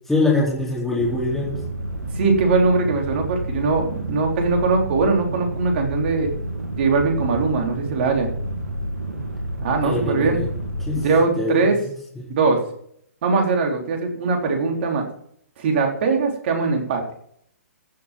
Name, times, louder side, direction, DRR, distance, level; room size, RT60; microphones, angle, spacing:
voice 1, 0.1-1.6 9.8-10.5 10.8-11.1 11.3-11.6 12.2-12.3, left 2 dB, 5° left, -6 dB, 3.9 m, -23 dB
sound 1, 1.0-11.1, right 1 dB, 85° right, 3.2 m, -30 dB
voice 2, 2.1-6.3 6.8-8.3 9.6-10.4 10.9-11.8 12.4-12.6 13.2-15.1 15.6-17.0, right 4 dB, 45° right, 2 dB, 3.9 m, -21 dB
15.5 x 7.1 x 5.9 m, 0.66 s
figure-of-eight pair, 130°, 8 cm